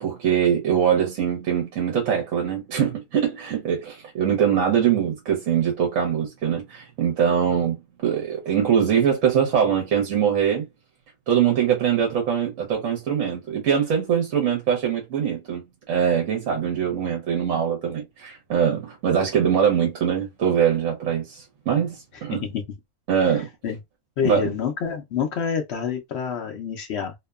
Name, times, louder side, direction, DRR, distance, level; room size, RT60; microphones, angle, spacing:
voice 1, 0.0-7.8 8.0-10.7 11.3-22.4 23.1-23.5 24.2-24.5, right 8 dB, 65° right, 1.1 m, -22 dB
voice 2, 22.3-22.6 23.3-23.8 24.2-27.1, left 7 dB, 65° left, 0.7 m, -28 dB
2.8 x 2.1 x 2.2 m
omnidirectional pair, 1.6 m